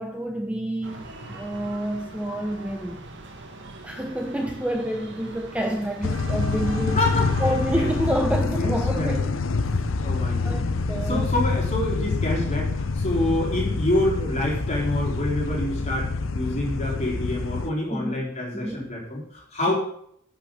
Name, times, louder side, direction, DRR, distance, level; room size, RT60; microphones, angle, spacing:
voice 1, 0.0-3.0 3.8-7.1 7.4-9.3 9.6-9.8 10.4-11.3 17.9-18.3 18.5-18.9, equal, 5° right, 2 dB, 0.9 m, -28 dB
sound 1, 0.8-8.2, right 2 dB, 60° right, 1.7 m, -41 dB
sound 2, 6.0-17.7, left 3 dB, 70° left, 0.7 m, -26 dB
voice 2, 7.0-7.9 8.6-9.2 10.0-10.8 11.1-16.1 16.3-19.7, left 1 dB, 35° left, -3 dB, 3.7 m, -27 dB
10.5 x 5.8 x 6.6 m, 0.68 s
head